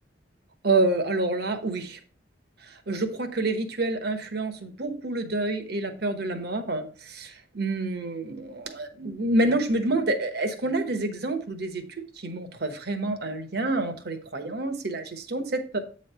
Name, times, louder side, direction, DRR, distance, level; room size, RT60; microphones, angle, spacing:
voice 1, 0.6-2.0 2.6-11.8 12.2-15.8, right 2 dB, 60° right, 1.1 m, -28 dB
8.5 x 3.2 x 5.4 m
head